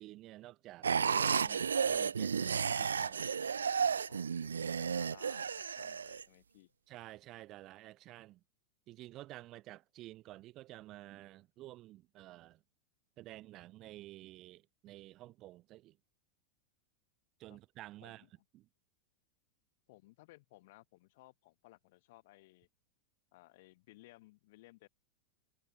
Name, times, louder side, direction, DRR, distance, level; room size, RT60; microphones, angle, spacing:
voice 1, 0.0-3.3 6.9-8.4 8.9-12.6 13.2-16.0 17.4-18.2 18.5-18.7, right 16 dB, 35° right, 2.4 m, -51 dB
sound 1, 0.8-6.2, right 6 dB, 70° right, 0.4 m, -33 dB
voice 2, 4.1-6.7 17.5-17.6 18.0-18.3 19.9-22.7 23.3-24.9, left 20 dB, 50° left, 3.4 m, -60 dB
figure-of-eight pair, 90°, 0 cm